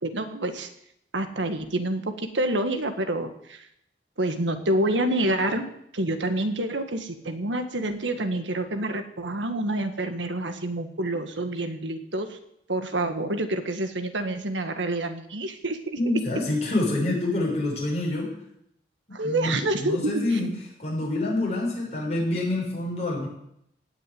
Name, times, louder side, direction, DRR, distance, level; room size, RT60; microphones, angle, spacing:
voice 1, 0.0-0.7 1.1-3.7 4.2-5.7 5.9-12.4 12.7-16.0 19.1-20.5, right 1 dB, 90° right, 8 dB, 1.7 m, -28 dB
voice 2, 16.0-18.3 19.2-20.5 20.8-23.3, left 2 dB, 35° left, -3 dB, 6.4 m, -27 dB
17.5 x 6.7 x 9.4 m, 0.75 s
head